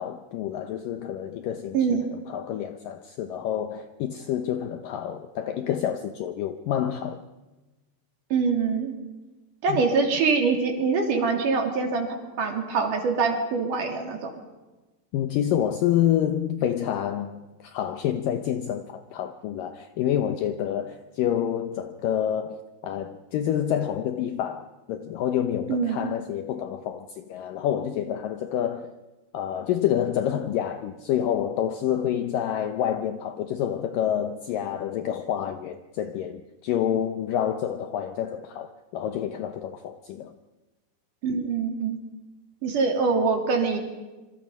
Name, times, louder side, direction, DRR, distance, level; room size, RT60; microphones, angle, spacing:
voice 1, 0.0-1.8 2.1-7.2 9.7-9.8 15.1-29.0 29.3-40.3, left 10 dB, 75° left, 2.1 m, -28 dB
voice 2, 1.7-2.1 8.3-8.9 9.6-14.4 25.7-26.1 41.2-42.0 42.6-43.8, right 5 dB, 55° right, 3.7 m, -24 dB
26.5 x 25.5 x 5.4 m
omnidirectional pair, 4.8 m